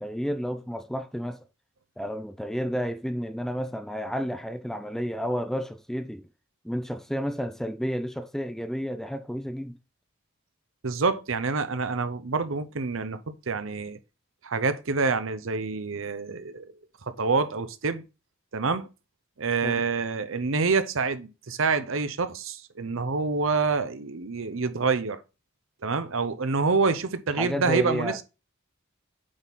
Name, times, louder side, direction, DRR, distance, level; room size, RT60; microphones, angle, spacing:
voice 1, 0.0-1.4 2.0-6.3 6.6-9.8 19.6-19.9 27.4-28.2, equal, ahead, 0.5 m, -31 dB
voice 2, 10.8-14.0 14.4-16.7 17.1-18.0 18.5-18.9 19.4-25.2 25.8-28.2, right 4 dB, 65° right, 0.8 m, -27 dB
8.7 x 4.2 x 3.6 m
head